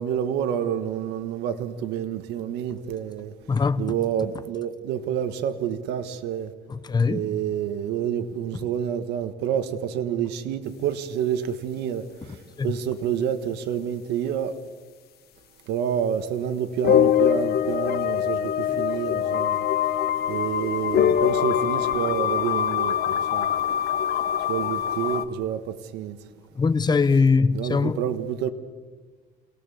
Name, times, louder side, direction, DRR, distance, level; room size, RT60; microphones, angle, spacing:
voice 1, 0.0-3.3 3.8-6.5 7.1-14.5 15.7-19.6 20.3-23.5 24.5-26.2 27.5-28.5, right 9 dB, 85° right, 1.6 m, -28 dB
voice 2, 3.5-3.9 6.7-7.2 12.6-12.7 26.6-28.0, left 4 dB, 25° left, 1.1 m, -21 dB
sound 1, 16.8-25.2, left 10 dB, 70° left, 1.3 m, -23 dB
28.0 x 18.5 x 7.1 m
cardioid pair, 110°, 17 cm